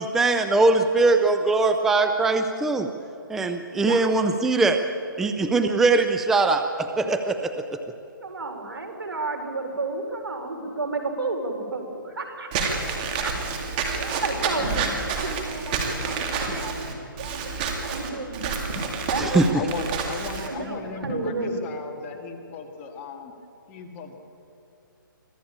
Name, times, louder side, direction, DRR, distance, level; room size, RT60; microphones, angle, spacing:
voice 1, 0.0-2.9 3.3-4.8 5.2-7.8 19.2-19.5, right 3 dB, 5° right, 7 dB, 0.4 m, -21 dB
voice 2, 3.7-4.1 8.2-13.3 13.7-14.9 15.2-16.8 17.1-18.8 19.1-19.8 20.3-21.7 21.9-22.0, right 3 dB, 90° right, 4 dB, 4.7 m, -32 dB
Walk footsteps / Squeak, 12.5-20.5, right 5 dB, 25° right, 2.4 m, -29 dB
voice 3, 14.6-15.1 19.3-23.3 23.7-24.1, left 5 dB, 20° left, 3 dB, 1.9 m, -36 dB
25.0 x 15.5 x 8.7 m, 2.7 s
hypercardioid pair, 160°, 12 cm